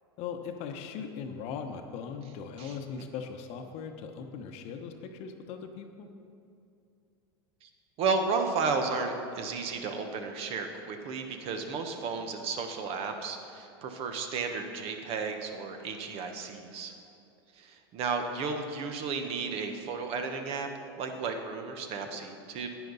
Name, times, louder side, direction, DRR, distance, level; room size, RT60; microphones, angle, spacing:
voice 1, 0.2-6.1, left 6 dB, 50° left, 5 dB, 1.0 m, -39 dB
voice 2, 8.0-16.9 17.6-20.7 21.0-22.7, right 4 dB, 45° right, 5 dB, 1.2 m, -33 dB
10.5 x 9.1 x 4.1 m, 2.6 s
hypercardioid pair, 100°, 13 cm